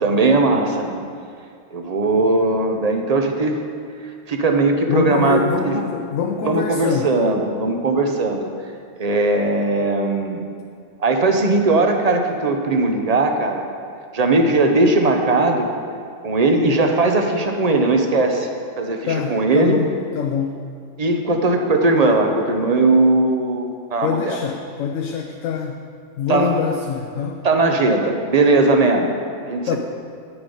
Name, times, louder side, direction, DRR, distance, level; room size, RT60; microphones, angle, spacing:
voice 1, 0.0-1.0 1.7-3.6 4.0-5.8 6.4-8.5 9.0-10.4 11.0-13.6 14.1-15.7 16.2-18.5 18.8-19.8 21.0-24.4 26.3-26.5 27.4-29.1 29.5-29.8, right 2 dB, 35° right, 4 dB, 0.8 m, -18 dB
voice 2, 4.9-7.1 19.1-20.6 24.0-25.8 26.2-27.4 29.7-29.8, left 6 dB, 85° left, 3 dB, 1.0 m, -24 dB
9.8 x 7.0 x 5.3 m, 2.2 s
omnidirectional pair, 1.3 m